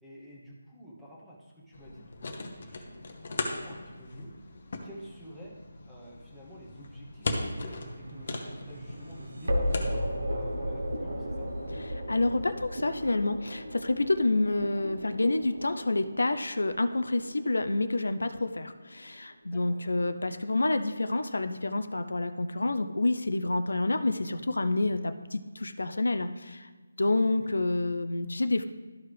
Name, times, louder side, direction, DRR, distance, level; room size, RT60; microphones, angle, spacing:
voice 1, 0.0-4.3 4.8-5.6 5.9-11.5 19.5-20.1 27.0-27.5 27.8-27.9, equal, 5° right, -7 dB, 1.1 m, -49 dB
sound 1, 1.7-12.6, left 2 dB, 45° left, 0.9 m, -39 dB
sound 2, 7.6-18.7, equal, 85° right, 1.0 m, -36 dB
voice 2, 11.9-26.7 27.0-28.6, left 2 dB, 90° left, 9 dB, 0.6 m, -28 dB
12.5 x 4.7 x 3.4 m, 1.3 s
figure-of-eight pair, 170°, 0 cm